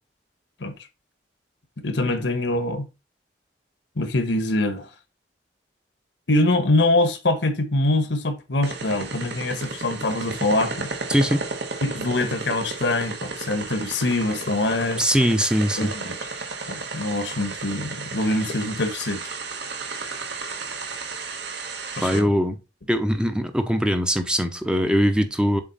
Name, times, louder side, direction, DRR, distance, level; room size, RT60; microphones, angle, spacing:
voice 1, 1.8-2.9 4.0-4.9 6.3-10.9 11.8-15.0 15.8-16.2 16.7-19.2 22.0-22.3, left 2 dB, 75° left, 1.2 m, -24 dB
sound 1, 8.6-22.2, right 4 dB, 65° right, 1.4 m, -33 dB
voice 2, 11.1-11.4 15.0-15.9 22.0-22.6 22.9-25.6, equal, 5° right, 0.7 m, -21 dB
7.5 x 4.0 x 4.0 m
head